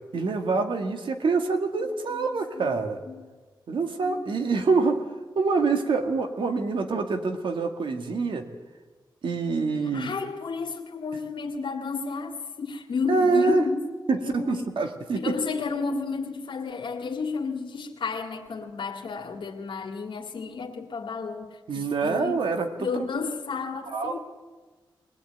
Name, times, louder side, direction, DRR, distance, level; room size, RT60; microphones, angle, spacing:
voice 1, 0.1-3.0 3.7-5.0 5.4-8.5 9.2-10.1 13.1-13.6 14.1-15.4 21.7-22.7 23.9-24.2, right 4 dB, 85° right, 5 dB, 2.0 m, -25 dB
voice 2, 2.1-2.8 3.0-3.2 4.0-4.3 9.8-13.8 14.1-14.6 15.1-22.4 22.8-24.2, left 5 dB, 90° left, 1 dB, 2.0 m, -32 dB
22.0 x 17.5 x 9.1 m, 1.3 s
cardioid pair, 70°, 8 cm